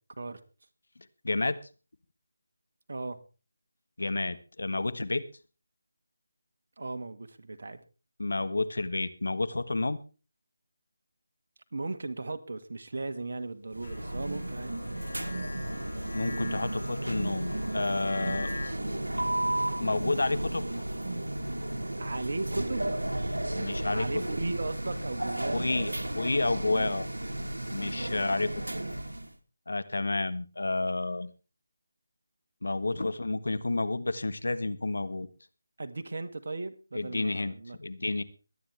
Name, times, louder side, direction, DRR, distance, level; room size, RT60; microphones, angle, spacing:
voice 1, 1.2-1.6 4.0-5.2 8.2-10.0 16.1-18.5 19.8-20.8 23.6-24.2 25.5-27.1 27.7-28.5 29.7-31.3 32.6-35.3 36.9-37.5 37.8-38.2, left 2 dB, 65° left, 13 dB, 1.4 m, -30 dB
voice 2, 6.8-7.8 11.7-14.8 18.2-18.5 22.0-23.0 23.5-25.9 26.7-26.9 27.7-27.9 35.8-37.8, right 3 dB, 55° right, 9 dB, 1.7 m, -37 dB
sound 1, 13.7-29.3, right 1 dB, 80° right, 1.7 m, -33 dB
Tanpura Mournful Bass Line C sharp, 13.8-18.7, left 3 dB, 50° left, 4.0 m, -44 dB
22.0 x 9.5 x 3.4 m, 0.33 s
figure-of-eight pair, 160°, 0 cm